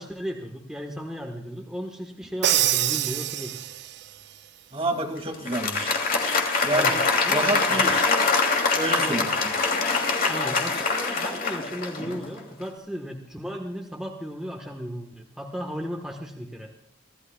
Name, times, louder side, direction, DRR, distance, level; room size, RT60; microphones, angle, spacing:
voice 1, 0.0-3.6 6.7-7.9 9.0-9.3 10.3-16.7, equal, 5° right, 1 dB, 1.2 m, -35 dB
Crash cymbal, 2.4-4.1, right 13 dB, 60° right, 0.5 m, -25 dB
voice 2, 4.7-5.9 6.6-7.0 7.3-8.0 8.7-9.3, right 2 dB, 30° right, 2 dB, 2.1 m, -28 dB
Applause, 5.3-12.3, left 4 dB, 50° left, 2.7 m, -24 dB
25.0 x 15.5 x 2.3 m, 0.81 s
head